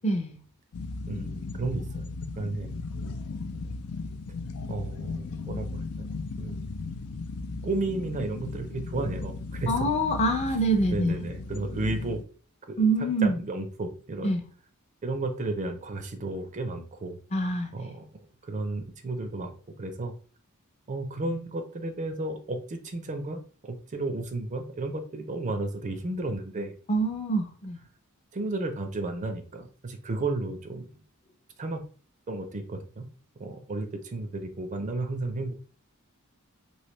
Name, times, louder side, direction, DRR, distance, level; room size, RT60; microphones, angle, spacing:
voice 1, 0.0-0.4 9.7-11.2 12.8-13.4 14.2-14.4 17.3-17.7 26.9-27.8, right 2 dB, 30° left, 5 dB, 0.6 m, -25 dB
sound 1, 0.7-12.2, left 3 dB, 85° left, 0.4 m, -36 dB
voice 2, 1.1-2.1 2.4-2.7 4.7-5.8 6.4-6.6 7.6-9.9 10.9-12.2 12.7-14.3 15.0-17.2 17.7-18.1 18.4-19.5 19.8-20.1 20.9-26.7 28.3-30.9 31.6-31.8 32.3-33.1 33.4-35.6, right 2 dB, 35° right, 7 dB, 0.4 m, -33 dB
3.1 x 2.7 x 3.0 m, 0.41 s
head